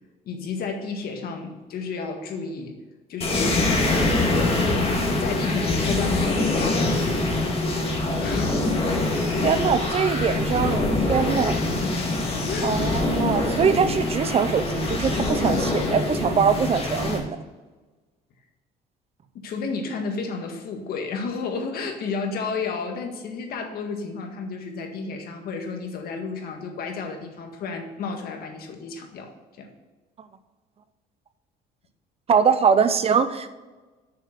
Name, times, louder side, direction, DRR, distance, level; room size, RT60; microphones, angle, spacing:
voice 1, 0.3-2.8 3.1-7.6 8.2-8.9 9.4-9.6 12.5-12.9 19.3-29.3 29.6-29.7, left 4 dB, 65° left, 3 dB, 1.8 m, -32 dB
sound 1, 3.2-17.2, left 2 dB, 35° left, 2.2 m, -24 dB
voice 2, 9.4-11.6 12.6-17.4 30.2-30.3 32.3-33.5, right 6 dB, 35° right, 12 dB, 0.6 m, -22 dB
6.7 x 6.6 x 6.6 m, 1.3 s
cardioid pair, 110°, 17 cm